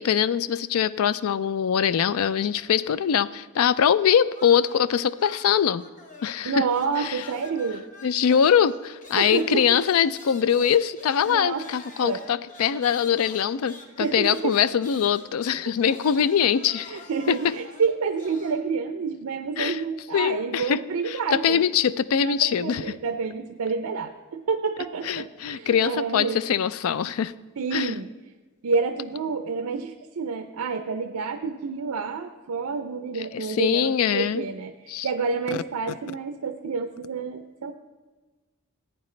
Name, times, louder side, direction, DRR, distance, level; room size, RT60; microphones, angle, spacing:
voice 1, 0.0-5.8 6.2-6.7 7.0-7.2 8.0-17.0 17.3-17.5 19.6-19.8 20.1-22.8 25.0-27.3 27.7-27.9 33.3-34.4 34.9-35.1 35.5-35.6, left 8 dB, 70° left, 17 dB, 0.4 m, -23 dB
sound 1, 4.3-6.4 6.7-18.6, left 2 dB, 35° left, 1.0 m, -46 dB
voice 2, 6.4-7.8 9.1-9.8 11.3-11.6 12.0-12.2 14.0-14.5 16.9-21.6 22.2-26.4 27.6-28.1 28.6-34.7 35.0-37.7, right 5 dB, 80° right, 8 dB, 0.5 m, -28 dB
15.0 x 9.0 x 3.2 m, 1.3 s
head